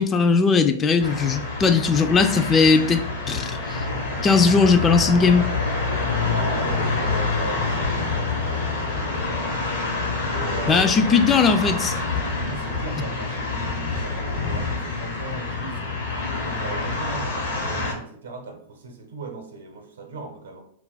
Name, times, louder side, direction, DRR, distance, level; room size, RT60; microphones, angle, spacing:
voice 1, 0.0-3.8 4.2-5.5 10.7-11.9, left 5 dB, 25° left, 7 dB, 0.3 m, -19 dB
sound 1, 1.0-17.9, left 3 dB, 75° left, 0.9 m, -27 dB
voice 2, 6.3-9.6 10.2-12.0 12.4-16.0 16.3-20.6, right 3 dB, 80° right, 4 dB, 0.7 m, -38 dB
2.4 x 2.2 x 3.8 m, 0.66 s
hypercardioid pair, 100°, 0 cm